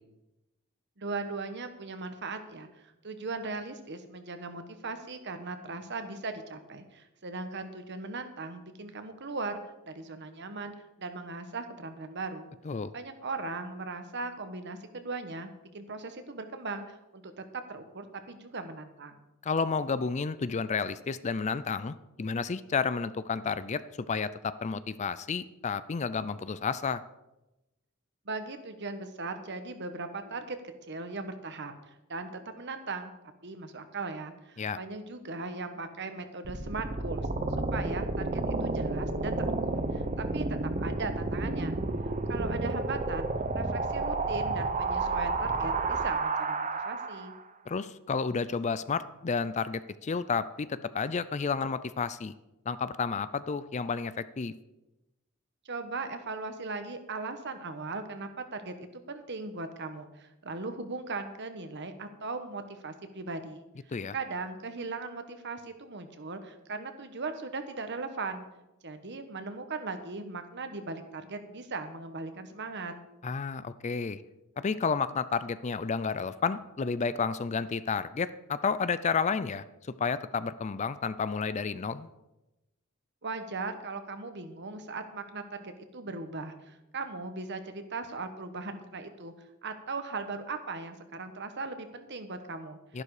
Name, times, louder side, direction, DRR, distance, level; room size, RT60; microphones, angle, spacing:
voice 1, 1.0-2.7 3.0-12.5 12.9-19.2 28.2-30.6 30.9-33.1 33.4-37.3 37.7-41.8 42.3-47.3 55.6-63.6 64.1-68.4 68.8-72.9 83.2-89.3 89.6-92.8, right 3 dB, 55° right, 8 dB, 1.3 m, -38 dB
voice 2, 19.4-23.8 24.1-27.0 34.6-34.8 47.7-52.3 52.7-54.5 63.9-64.1 73.2-74.2 74.6-79.6 80.0-82.1 92.9-93.0, left 5 dB, 35° left, 15 dB, 0.4 m, -31 dB
sound 1, 36.4-47.4, right 3 dB, 35° right, 0.8 m, -31 dB
12.5 x 11.0 x 4.9 m, 0.97 s
head